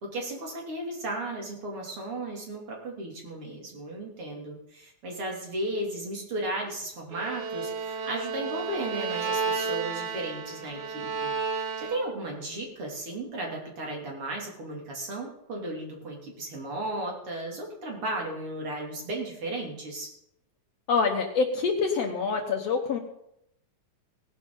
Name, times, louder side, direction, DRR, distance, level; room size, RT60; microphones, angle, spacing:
voice 1, 0.0-20.1, right 1 dB, 45° right, -1 dB, 3.5 m, -35 dB
Bowed string instrument, 7.1-12.3, right 5 dB, 85° right, 3.2 m, -32 dB
voice 2, 20.9-23.0, left 5 dB, 65° left, 4 dB, 2.1 m, -26 dB
18.0 x 11.0 x 3.9 m, 0.76 s
omnidirectional pair, 3.5 m